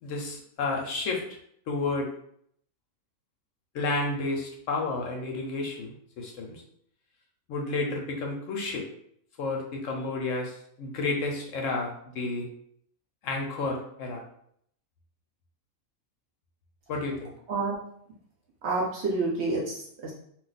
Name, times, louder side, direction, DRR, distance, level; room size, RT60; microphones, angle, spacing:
voice 1, 0.0-1.2 1.7-2.1 3.7-6.6 7.5-8.8 9.4-12.5 13.2-14.2 16.9-17.3, left 3 dB, 70° left, 1 dB, 0.9 m, -31 dB
voice 2, 17.5-17.8 18.6-20.1, right 3 dB, 60° right, -3 dB, 0.8 m, -29 dB
2.4 x 2.2 x 3.9 m, 0.68 s
omnidirectional pair, 1.5 m